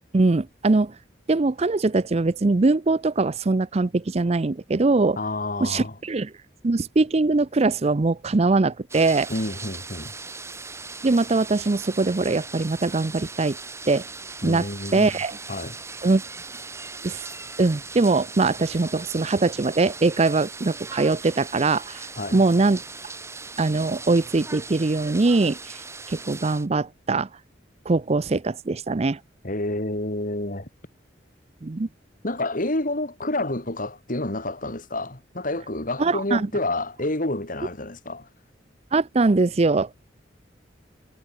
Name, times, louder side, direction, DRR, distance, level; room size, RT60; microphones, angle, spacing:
voice 1, 0.1-0.9 1.3-5.2 5.6-6.3 6.6-9.3 11.0-13.6 13.9-14.0 14.4-15.4 16.0-16.2 17.0-17.2 17.6-22.1 22.3-22.8 23.6-25.6 26.1-27.3 27.9-29.2 31.6-31.9 36.0-36.5 38.9-40.0, right 3 dB, 35° right, 0.5 m, -22 dB
voice 2, 5.2-5.9 9.3-10.1 14.4-15.1 15.5-15.8 22.2-22.4 29.4-30.7 32.2-38.3, left 2 dB, 45° left, 3.0 m, -29 dB
sound 1, 8.9-26.7, right 4 dB, 15° right, 1.8 m, -39 dB
head